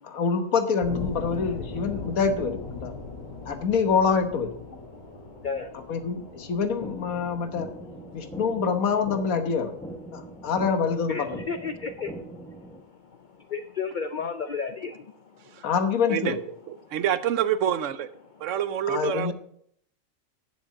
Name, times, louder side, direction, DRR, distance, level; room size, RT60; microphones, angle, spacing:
voice 1, 0.0-2.9 3.5-4.5 5.9-7.7 8.1-9.7 10.1-11.4 15.6-16.4 18.9-19.3, left 5 dB, 80° left, 1.5 m, -26 dB
sound 1, 0.8-11.6, left 3 dB, 30° left, 1.8 m, -41 dB
sound 2, 6.8-12.8, right 1 dB, 5° left, 0.7 m, -41 dB
voice 2, 11.1-12.1 13.5-15.0, left 5 dB, 55° left, 0.5 m, -31 dB
voice 3, 16.1-16.4 16.7-18.1 18.4-19.3, right 10 dB, 70° right, 0.9 m, -27 dB
7.2 x 7.1 x 7.3 m
omnidirectional pair, 1.5 m